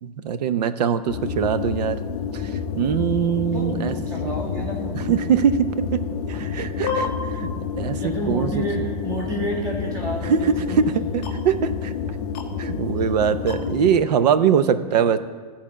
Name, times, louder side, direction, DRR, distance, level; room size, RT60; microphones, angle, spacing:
voice 1, 0.0-2.0 2.8-3.9 4.2-4.3 4.9-5.7 5.9-6.0 6.3-7.1 7.4-8.0 8.3-8.6 10.3-10.4 10.8-10.9 11.3-11.9 12.6-15.2, right 8 dB, 85° right, 12 dB, 0.7 m, -22 dB
sound 1, 1.1-13.9, left 6 dB, 25° left, 0.6 m, -29 dB
voice 2, 3.5-5.0 6.3-6.6 8.0-10.8 13.0-13.1, equal, 15° right, -2 dB, 1.6 m, -30 dB
13.0 x 4.4 x 7.4 m, 1.6 s
supercardioid pair, 180°, 20 cm